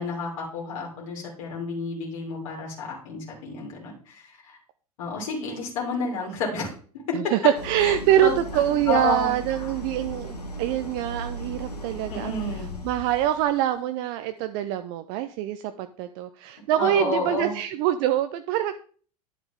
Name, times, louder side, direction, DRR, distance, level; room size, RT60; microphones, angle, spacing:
voice 1, 0.0-4.6 5.0-6.7 7.1-7.2 7.8-7.9 8.2-8.3 8.9-9.7 12.1-12.7 16.8-17.6, left 3 dB, 60° left, -1 dB, 2.8 m, -31 dB
voice 2, 7.1-12.4 12.8-18.9, right 12 dB, 45° right, 10 dB, 0.6 m, -25 dB
Idling, 7.6-13.6, equal, 85° left, 1.4 m, -37 dB
9.9 x 7.3 x 3.5 m, 0.43 s
figure-of-eight pair, 80°, 20 cm